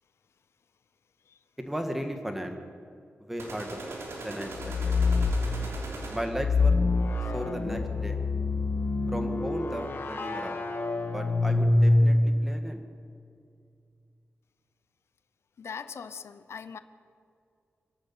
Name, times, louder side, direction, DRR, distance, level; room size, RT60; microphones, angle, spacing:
voice 1, 1.7-2.6 3.2-3.8 4.2-4.5 4.9-5.0 6.1-6.8 7.3-8.2 9.1-10.7 11.1-12.8, equal, 5° right, 4 dB, 1.9 m, -35 dB
sound 1, 3.4-6.5, right 2 dB, 70° right, 3.6 m, -40 dB
sound 2, 4.5-5.5 6.3-12.3, left 2 dB, 55° left, 2.2 m, -25 dB
voice 2, 15.6-16.8, left 6 dB, 75° left, 12 dB, 0.8 m, -40 dB
26.5 x 11.5 x 8.7 m, 2.4 s
wide cardioid pair, 155°, 4 cm